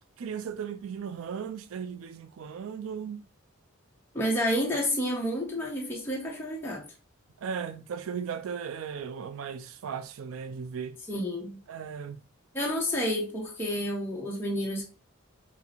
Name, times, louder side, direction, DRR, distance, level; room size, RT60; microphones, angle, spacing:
voice 1, 0.2-3.2 7.4-11.0 11.7-12.2, right 7 dB, 80° right, 0.4 m, -36 dB
voice 2, 4.1-6.8 11.1-11.6 12.5-14.8, equal, 10° left, 0.8 m, -30 dB
5.9 x 2.0 x 2.9 m
head